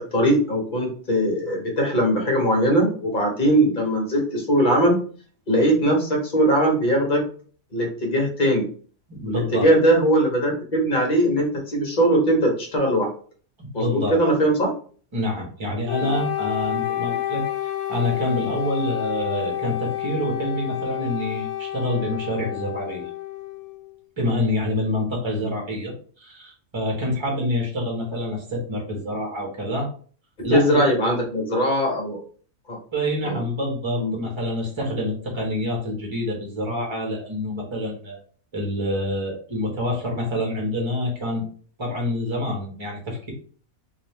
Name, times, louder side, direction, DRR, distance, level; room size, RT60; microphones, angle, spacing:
voice 1, 0.0-5.0 5.5-7.2 7.7-8.6 9.3-13.1 13.7-14.7 16.0-16.1 25.4-25.6 30.5-32.2 32.7-32.8 33.2-33.4 34.0-34.1, right 1 dB, 35° left, 1 dB, 1.4 m, -20 dB
voice 2, 9.1-9.7 13.6-14.2 15.1-17.4 17.9-23.1 24.2-29.9 30.4-30.8 32.9-38.2 38.5-41.5 41.8-43.3, left 1 dB, 20° right, -1 dB, 1.4 m, -27 dB
Wind instrument woodwind instrument, 15.9-23.9, left 13 dB, 70° left, 1.0 m, -29 dB
3.9 x 2.9 x 3.5 m, 0.43 s
omnidirectional pair, 1.5 m